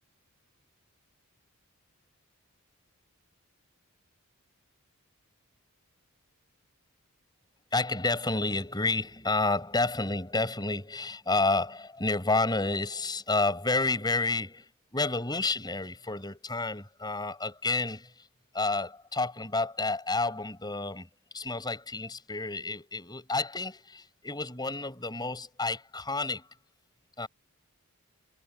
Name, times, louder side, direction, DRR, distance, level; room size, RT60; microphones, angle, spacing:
voice 1, 7.7-18.1 18.5-21.1 21.3-26.4 27.2-27.3, left 3 dB, 20° left, 7.1 m, -30 dB
head